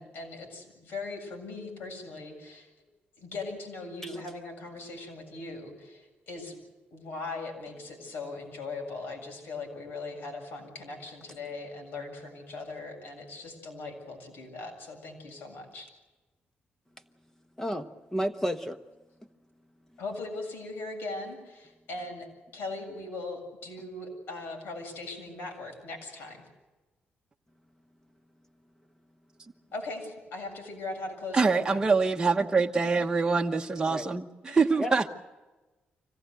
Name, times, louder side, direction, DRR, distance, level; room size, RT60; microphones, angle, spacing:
voice 1, 0.0-2.7 3.2-6.6 6.9-15.9 20.0-22.3 22.5-26.4 29.7-31.8 34.5-34.6, left 3 dB, 80° left, 3 dB, 7.4 m, -39 dB
voice 2, 17.6-18.8 33.9-34.1 34.8-34.9, equal, 10° left, 8 dB, 1.1 m, -31 dB
voice 3, 31.3-35.1, right 4 dB, 20° right, 1 dB, 1.1 m, -25 dB
25.5 x 18.0 x 8.0 m, 1.1 s
cardioid pair, 110°, 4 cm